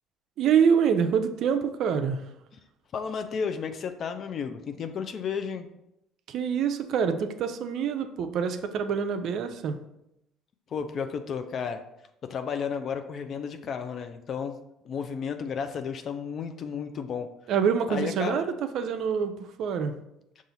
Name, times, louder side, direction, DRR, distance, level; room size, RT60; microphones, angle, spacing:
voice 1, 0.4-2.2 6.3-9.8 17.5-18.4 18.7-19.9, right 7 dB, 60° right, 8 dB, 0.4 m, -26 dB
voice 2, 2.9-5.7 10.7-11.8 12.2-14.6 14.8-17.3 17.9-18.4, left 6 dB, 50° left, 8 dB, 0.4 m, -32 dB
5.5 x 2.4 x 3.9 m, 0.83 s
supercardioid pair, 85°, 0 cm